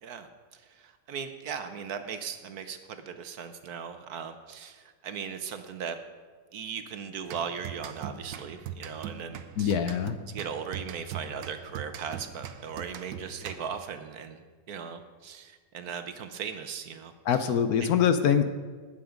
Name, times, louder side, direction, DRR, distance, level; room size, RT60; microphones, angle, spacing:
voice 1, 0.5-6.0 6.5-9.8 10.3-17.5, right 7 dB, 65° right, 9 dB, 1.2 m, -38 dB
sound 1, 7.3-13.9, right 8 dB, 85° right, 1.4 m, -41 dB
voice 2, 9.6-10.2 17.3-18.4, left 8 dB, 65° left, 10 dB, 1.1 m, -24 dB
19.0 x 7.1 x 5.1 m, 1.5 s
omnidirectional pair, 1.9 m